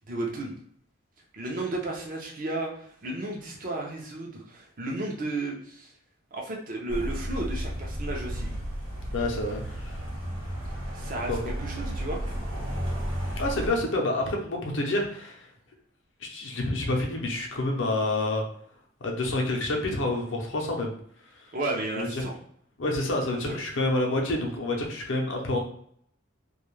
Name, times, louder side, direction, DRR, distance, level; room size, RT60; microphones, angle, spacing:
voice 1, 0.1-0.5 1.3-5.9 6.3-8.5 10.9-12.2 21.5-22.3 23.5-23.6, right 2 dB, 40° right, -1 dB, 0.5 m, -33 dB
sound 1, 6.9-13.7, equal, 90° right, 0.8 m, -33 dB
voice 2, 9.0-10.0 11.3-11.5 13.4-15.5 16.2-18.5 19.0-21.0 21.3-21.5 21.9-22.2 22.8-25.6, left 2 dB, 65° left, 0 dB, 0.6 m, -28 dB
2.3 x 2.1 x 3.1 m, 0.65 s
head